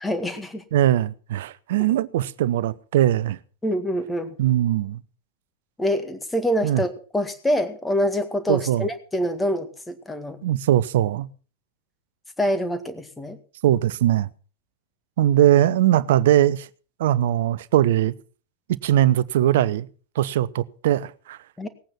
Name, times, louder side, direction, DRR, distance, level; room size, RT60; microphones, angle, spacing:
voice 1, 0.0-0.6 3.6-4.4 5.8-10.4 12.4-13.4 21.6-21.7, equal, 10° left, 1.8 m, -25 dB
voice 2, 0.7-3.4 4.4-5.0 6.6-6.8 8.5-8.9 10.4-11.3 13.6-14.3 15.2-16.7 17.0-18.1 18.8-19.9 20.2-21.4, right 12 dB, 55° right, 0.7 m, -20 dB
18.5 x 8.9 x 5.8 m
figure-of-eight pair, 90°, 0 cm